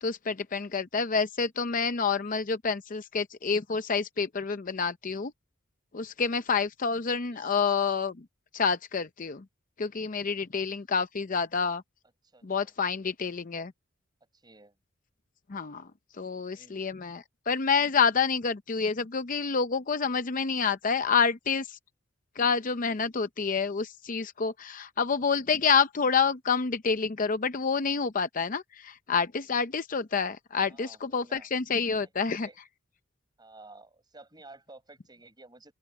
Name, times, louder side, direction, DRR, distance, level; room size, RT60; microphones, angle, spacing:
voice 1, 0.0-5.3 5.9-8.2 8.5-9.4 9.8-11.8 12.4-13.7 15.5-15.9 16.2-21.8 22.4-32.5, left 5 dB, 40° left, 0.6 m, -28 dB
voice 2, 7.1-7.6 12.3-12.7 14.3-14.8 16.5-16.9 30.6-31.5 32.2-32.6 33.4-35.7, right 2 dB, 20° right, 6.7 m, -53 dB
open air
head